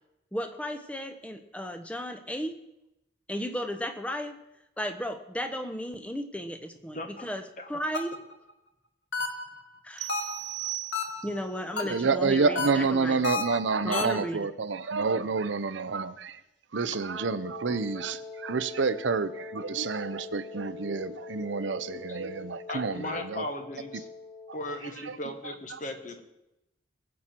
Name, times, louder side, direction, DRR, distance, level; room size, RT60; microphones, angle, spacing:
voice 1, 0.3-2.6 3.3-4.4 4.8-7.4 7.7-8.1 9.8-10.1 11.2-13.2 13.8-14.4, equal, 5° left, 8 dB, 0.9 m, -34 dB
sound 1, 7.9-8.3 9.1-9.6 10.1-10.5 10.9-11.4 11.8-12.2 12.5-14.2, left 4 dB, 80° left, 1.5 m, -32 dB
sound 2, 10.0-11.5, right 16 dB, 40° right, 0.4 m, -37 dB
voice 2, 11.8-16.4 16.7-23.4 24.5-24.6 25.1-25.2 25.7-25.8, right 4 dB, 90° right, 13 dB, 0.7 m, -29 dB
Wind instrument woodwind instrument, 17.0-24.9, left 3 dB, 65° left, 3.6 m, -43 dB
voice 3, 22.7-24.1 24.5-26.2, left 1 dB, 45° left, 6 dB, 1.4 m, -37 dB
20.5 x 7.4 x 4.5 m, 0.89 s
head